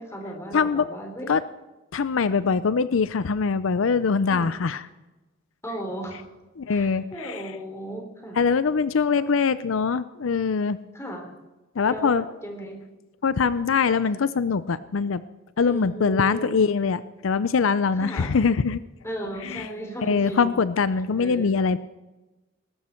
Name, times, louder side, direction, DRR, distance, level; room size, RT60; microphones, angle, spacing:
voice 1, 0.0-1.3 4.3-4.5 5.6-6.2 6.7-8.4 9.1-9.3 10.9-11.3 11.8-12.8 15.7-16.7 18.0-18.3 19.0-20.7 21.2-21.6, right 1 dB, 15° left, 2 dB, 3.5 m, -36 dB
voice 2, 0.5-0.9 1.3-1.4 1.9-4.8 6.6-7.4 8.4-10.8 11.8-12.2 13.2-15.2 15.6-18.8 19.4-19.7 20.0-21.8, left 5 dB, 85° left, 15 dB, 0.5 m, -23 dB
20.5 x 12.0 x 4.4 m, 1.1 s
head